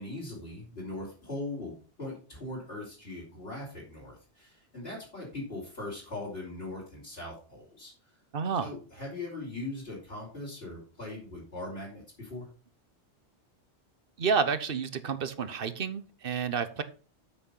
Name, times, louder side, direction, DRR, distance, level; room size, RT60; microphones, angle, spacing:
voice 1, 0.0-7.9 8.6-12.5, left 2 dB, 60° left, -8 dB, 4.8 m, -40 dB
voice 2, 8.3-8.7 14.2-16.8, right 6 dB, 55° right, 12 dB, 1.1 m, -30 dB
8.1 x 6.3 x 5.6 m, 0.37 s
omnidirectional pair, 1.2 m